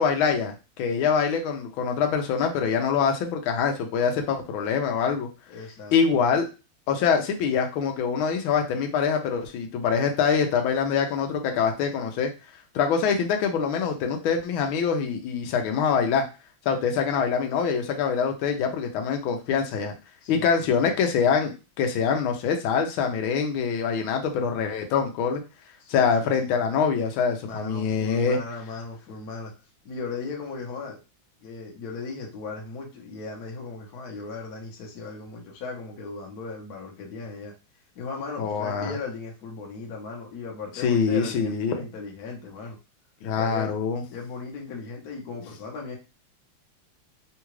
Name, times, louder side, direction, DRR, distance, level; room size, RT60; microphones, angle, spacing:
voice 1, 0.0-5.3 5.9-6.5 6.9-12.3 12.7-16.3 16.6-19.9 20.3-25.4 25.9-28.4 38.4-38.9 40.8-41.8 43.2-44.0, left 6 dB, 80° left, 4 dB, 1.4 m, -24 dB
voice 2, 5.5-6.2 20.2-20.9 25.8-26.3 27.4-29.5 29.8-31.0 31.4-37.5 37.9-42.8 43.3-43.7 44.1-46.0, left 4 dB, 55° left, -1 dB, 1.2 m, -37 dB
3.7 x 2.3 x 3.0 m, 0.30 s
omnidirectional pair, 2.3 m